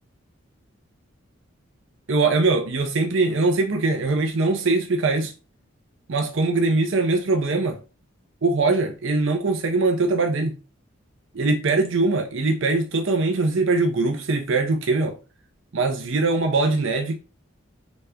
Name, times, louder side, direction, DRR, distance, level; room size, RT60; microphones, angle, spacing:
voice 1, 2.1-5.3 6.1-7.8 8.4-10.6 11.3-15.2 15.7-17.1, right 3 dB, 65° right, 0.6 m, -22 dB
4.1 x 3.3 x 3.6 m
head